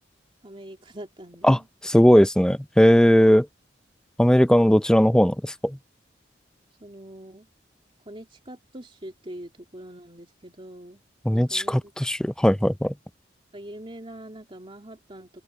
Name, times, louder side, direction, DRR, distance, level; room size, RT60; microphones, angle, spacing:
voice 1, 0.4-1.7 6.8-7.5 8.0-11.0 11.3-11.9 13.5-15.4, right 1 dB, 30° right, 3.0 m, -43 dB
voice 2, 1.4-3.5 4.2-5.8 11.3-12.9, equal, 5° left, 0.5 m, -18 dB
open air
head